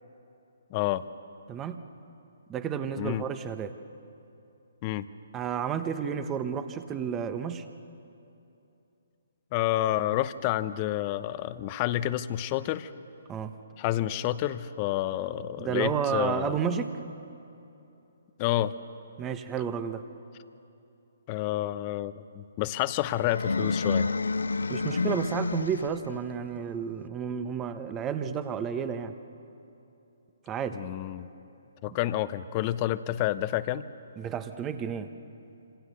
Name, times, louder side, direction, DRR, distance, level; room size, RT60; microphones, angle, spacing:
voice 1, 0.7-1.0 3.0-3.2 4.8-5.1 9.5-12.9 13.8-16.6 18.4-18.7 21.3-24.1 30.7-31.3 31.8-33.9, left 14 dB, 30° left, 14 dB, 0.9 m, -29 dB
voice 2, 2.5-3.7 5.3-7.6 13.3-13.5 15.6-16.9 19.2-20.0 24.7-29.1 30.5-30.8 31.9-32.0 34.2-35.1, right 7 dB, 20° right, 9 dB, 1.2 m, -31 dB
sound 1, 23.2-26.1, left 4 dB, 80° left, 0.7 m, -29 dB
27.0 x 26.5 x 6.8 m, 2.8 s
figure-of-eight pair, 140°, 0 cm